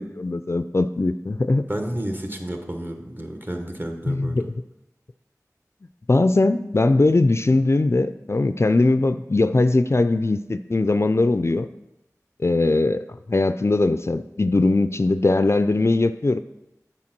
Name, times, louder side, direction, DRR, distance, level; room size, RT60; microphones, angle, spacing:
voice 1, 0.0-1.6 4.1-4.4 6.1-11.7 12.4-13.0 13.3-16.4, left 2 dB, 45° left, 11 dB, 0.3 m, -20 dB
voice 2, 1.7-4.5, right 1 dB, 35° right, 4 dB, 1.1 m, -31 dB
8.6 x 4.4 x 5.9 m, 0.91 s
wide cardioid pair, 45°, 6 cm